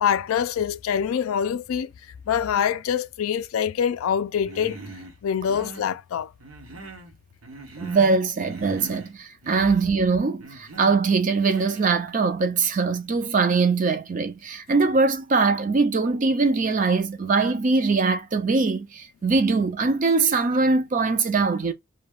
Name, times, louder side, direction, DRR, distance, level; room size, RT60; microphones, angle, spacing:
voice 1, 0.0-1.9 2.3-4.8 5.2-6.3, left 8 dB, 80° left, 0.3 m, -25 dB
Human voice, 4.5-5.1 5.4-5.9 6.4-7.1 7.4-8.2 8.4-9.1 9.4-9.8 10.4-11.0 11.5-11.9, right 2 dB, 75° right, 0.9 m, -41 dB
voice 2, 7.8-21.7, right 4 dB, 35° right, 0.4 m, -22 dB
2.3 x 2.1 x 3.4 m
head